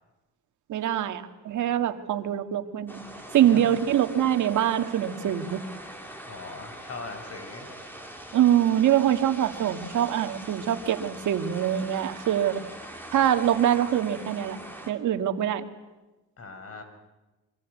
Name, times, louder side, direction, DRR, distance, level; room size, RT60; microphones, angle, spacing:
voice 1, 0.7-3.0 3.3-5.6 8.3-12.6 13.1-14.6 14.9-15.6, right 10 dB, 75° right, 7 dB, 2.0 m, -24 dB
sound 1, 2.9-14.9, right 1 dB, 5° left, 5.4 m, -42 dB
voice 2, 3.4-3.8 6.3-7.7 16.4-16.8, left 3 dB, 50° left, 7 dB, 6.0 m, -40 dB
27.0 x 24.0 x 8.4 m, 1.1 s
cardioid pair, 90°, 30 cm